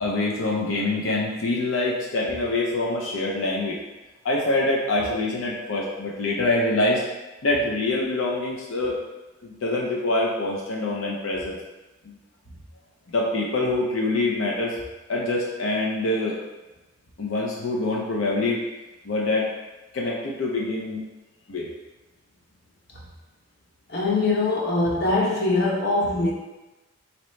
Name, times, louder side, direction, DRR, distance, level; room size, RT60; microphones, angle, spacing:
voice 1, 0.0-3.8 4.2-7.0 7.4-9.0 9.4-11.6 12.1-12.2 13.1-14.8 15.1-16.4 17.2-18.6 19.1-19.5 19.9-21.1 21.5-21.7, left 2 dB, 85° left, -3 dB, 0.6 m, -25 dB
voice 2, 23.9-26.3, left 2 dB, 55° left, -3 dB, 0.9 m, -22 dB
4.1 x 2.9 x 3.1 m, 1.1 s
head